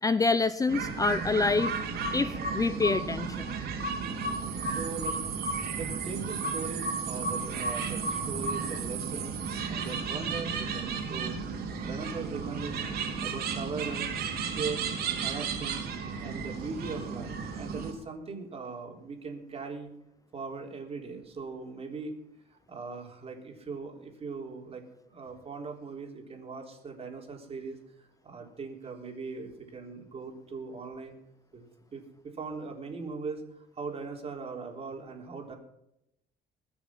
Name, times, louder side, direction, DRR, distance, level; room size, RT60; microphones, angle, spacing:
voice 1, 0.0-1.7 2.1-3.6, left 4 dB, 20° left, 13 dB, 0.6 m, -27 dB
sound 1, 0.7-17.9, right 5 dB, 65° right, 3.2 m, -33 dB
voice 2, 4.6-5.2 5.7-9.4 9.7-11.4 11.8-12.8 13.2-14.1 14.5-14.9 15.2-15.8 16.2-19.9 20.3-22.2 22.5-31.2 31.5-31.7 31.9-35.5, right 4 dB, 35° right, 2 dB, 3.8 m, -40 dB
21.0 x 7.1 x 6.0 m, 0.80 s
cardioid pair, 110°, 17 cm